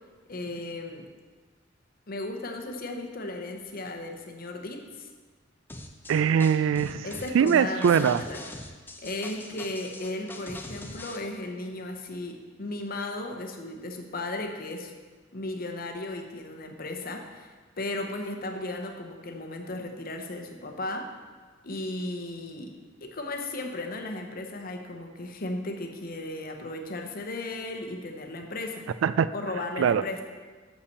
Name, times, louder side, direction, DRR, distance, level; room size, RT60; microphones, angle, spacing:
voice 1, 0.3-1.1 2.1-5.1 7.0-8.4 9.0-14.9 15.3-21.1 21.6-28.9 29.3-30.2, left 2 dB, 50° left, 4 dB, 0.9 m, -35 dB
sound 1, 5.7-11.2, left 2 dB, 10° left, 0.6 m, -42 dB
voice 2, 6.1-7.1 7.3-8.2 29.0-29.3 29.8-30.0, right 7 dB, 80° right, 15 dB, 0.3 m, -22 dB
6.5 x 5.7 x 6.7 m, 1.4 s
head